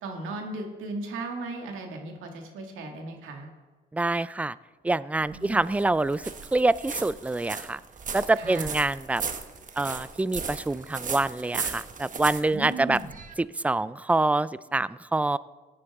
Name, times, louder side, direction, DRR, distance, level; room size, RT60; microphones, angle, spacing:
voice 1, 0.0-3.5 5.3-5.6 8.4-8.7 12.5-13.1, right 2 dB, 85° right, 2 dB, 2.1 m, -36 dB
voice 2, 3.9-4.6 4.8-7.8 8.1-9.2 9.8-13.0 13.6-15.4, right 2 dB, 5° right, 18 dB, 0.3 m, -26 dB
sound 1, 5.2-13.3, right 5 dB, 40° right, 1.1 m, -37 dB
17.0 x 9.8 x 3.6 m, 1.3 s
cardioid pair, 90°, 20 cm